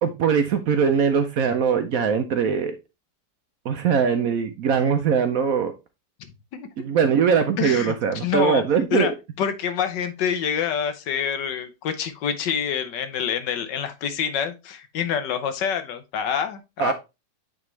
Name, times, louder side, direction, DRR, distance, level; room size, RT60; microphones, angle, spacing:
voice 1, 0.0-2.8 3.6-5.7 6.8-9.1 16.8-16.9, right 6 dB, 65° right, 8 dB, 0.9 m, -21 dB
voice 2, 7.6-8.6 8.9-9.1 9.4-16.9, left 8 dB, 75° left, 9 dB, 1.5 m, -26 dB
8.8 x 3.6 x 3.1 m, 0.25 s
omnidirectional pair, 1.9 m